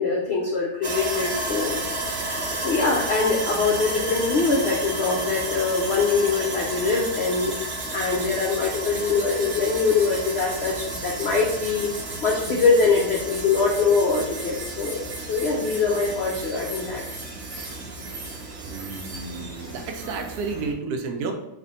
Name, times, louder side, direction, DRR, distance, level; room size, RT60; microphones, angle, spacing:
voice 1, 0.0-1.8 2.3-7.5 7.9-11.9 12.2-17.0 17.5-17.7, left 4 dB, 75° left, -2 dB, 0.5 m, -23 dB
Sawing, 0.8-20.7, right 2 dB, 55° right, 0.8 m, -32 dB
voice 2, 18.7-21.3, right 4 dB, 75° right, 4 dB, 1.0 m, -31 dB
3.4 x 2.4 x 3.9 m, 0.89 s
omnidirectional pair, 1.8 m